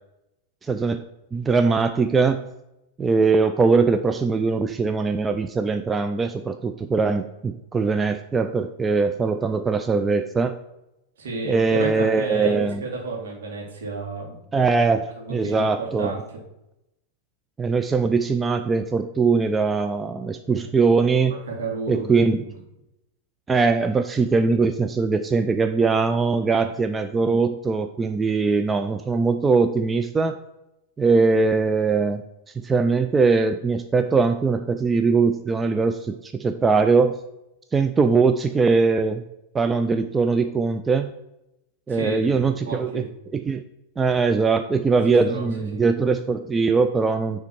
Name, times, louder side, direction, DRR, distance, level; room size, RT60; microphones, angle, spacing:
voice 1, 0.6-1.0 1.3-2.5 3.0-10.6 11.4-12.8 14.5-16.1 17.6-21.4 21.9-22.4 23.5-30.4 31.0-32.2 32.5-37.2 37.7-39.2 39.5-41.1 41.9-43.1 43.3-43.6 44.0-47.4, right 4 dB, 15° right, 8 dB, 0.3 m, -21 dB
voice 2, 11.2-14.4 15.2-16.2 20.5-20.6 21.3-22.1 22.4-22.5 26.5-26.7 41.9-42.3 42.6-43.0 45.2-45.8, right 3 dB, 60° right, -1 dB, 2.0 m, -31 dB
9.5 x 3.4 x 4.5 m, 0.88 s
figure-of-eight pair, 90°, 0 cm